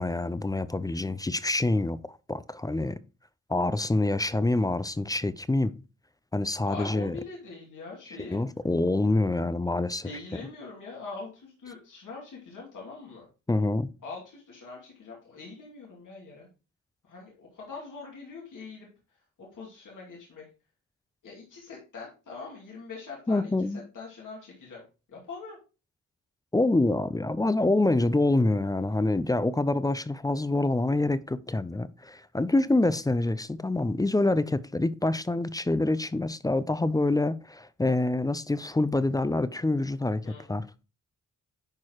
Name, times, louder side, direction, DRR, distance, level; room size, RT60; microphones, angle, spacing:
voice 1, 0.0-3.0 3.5-5.7 6.3-7.2 8.2-10.1 13.5-13.9 23.3-23.8 26.5-40.8, left 2 dB, 10° left, 0.4 m, -26 dB
voice 2, 6.7-8.4 10.0-13.3 14.0-16.5 17.0-18.9 19.4-20.4 21.2-23.5 23.9-24.8 25.1-25.6 40.2-40.5, left 4 dB, 75° left, 2.5 m, -43 dB
10.5 x 4.6 x 2.9 m
cardioid pair, 95°, 31 cm